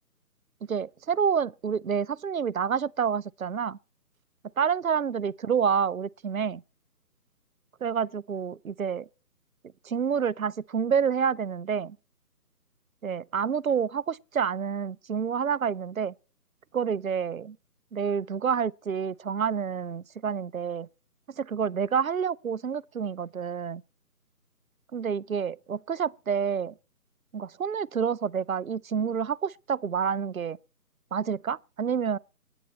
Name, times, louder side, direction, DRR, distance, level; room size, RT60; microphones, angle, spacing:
voice 1, 0.7-3.8 4.6-6.6 7.8-9.1 9.8-12.0 13.0-16.1 16.7-17.6 17.9-20.9 21.4-23.8 24.9-26.7 27.3-30.6 31.1-32.2, right 7 dB, 60° right, 0.6 m, -28 dB
20.0 x 9.9 x 4.3 m
figure-of-eight pair, 155°, 48 cm